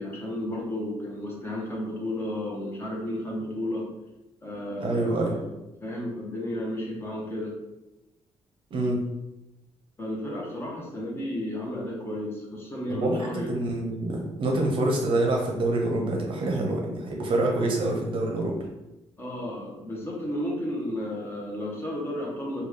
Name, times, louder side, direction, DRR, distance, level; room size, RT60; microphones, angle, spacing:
voice 1, 0.0-3.9 4.4-5.5 5.8-7.5 10.0-13.5 19.2-22.7, left 1 dB, 20° left, -3 dB, 0.8 m, -33 dB
voice 2, 4.8-5.4 8.7-9.1 12.9-18.6, right 2 dB, 50° right, 1 dB, 0.6 m, -26 dB
3.4 x 2.3 x 3.2 m, 0.97 s
cardioid pair, 140°, 11 cm